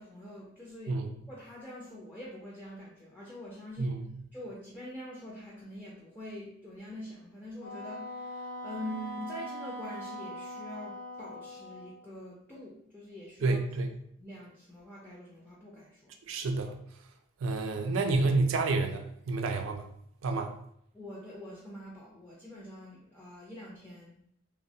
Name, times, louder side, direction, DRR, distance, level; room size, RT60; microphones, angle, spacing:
voice 1, 0.0-1.0 1.3-3.9 4.3-16.1 20.9-24.4, left 1 dB, 10° left, -6 dB, 0.4 m, -45 dB
Wind instrument woodwind instrument, 7.6-12.1, left 1 dB, 75° left, 0.6 m, -41 dB
voice 2, 13.4-13.9 16.3-16.8 17.4-19.8 20.2-20.5, right 3 dB, 75° right, 6 dB, 0.4 m, -29 dB
2.9 x 2.0 x 2.6 m, 0.71 s
head